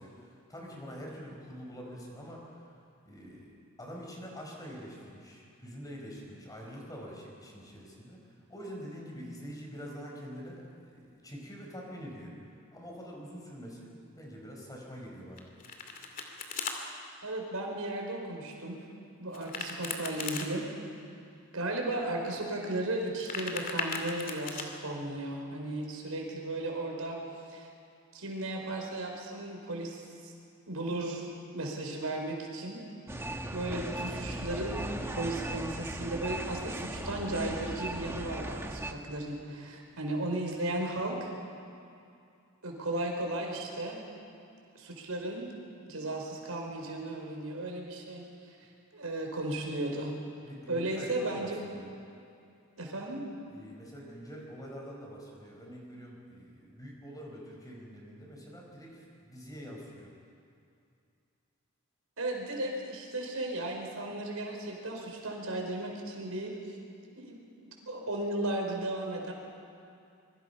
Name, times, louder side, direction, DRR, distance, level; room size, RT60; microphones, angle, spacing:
voice 1, 0.0-2.5 3.0-8.2 8.5-12.3 12.7-15.5 50.4-51.9 53.5-60.1, equal, 15° left, -1 dB, 5.1 m, -45 dB
Domestic sounds home sounds, 15.4-16.8 19.3-20.5 23.0-24.7, left 4 dB, 40° left, 2.5 m, -37 dB
voice 2, 17.2-18.8 19.2-20.6 21.5-27.2 27.5-27.7 28.1-30.3 30.7-31.2 31.5-32.8 33.2-41.3 42.6-44.0 44.7-45.5 45.8-48.3 48.9-50.1 50.7-51.6 52.8-53.2 62.2-66.5 67.2-69.3, right 1 dB, 80° right, 1 dB, 4.7 m, -35 dB
sound 1, 33.1-38.9, right 1 dB, 10° right, 1.2 m, -37 dB
26.0 x 23.0 x 5.8 m, 2.5 s
head